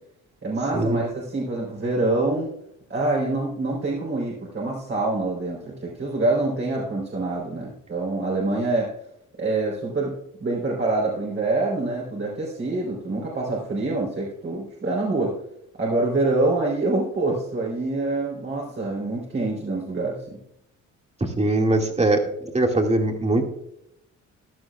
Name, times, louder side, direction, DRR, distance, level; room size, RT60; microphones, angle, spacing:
voice 1, 0.4-2.5 2.9-8.9 9.4-15.3 15.8-20.4, right 2 dB, 40° right, -4 dB, 3.8 m, -26 dB
voice 2, 21.4-22.2 22.5-23.4, right 2 dB, 20° right, 2 dB, 2.2 m, -21 dB
15.5 x 11.5 x 2.4 m, 0.77 s
cardioid pair, 90°, 30 cm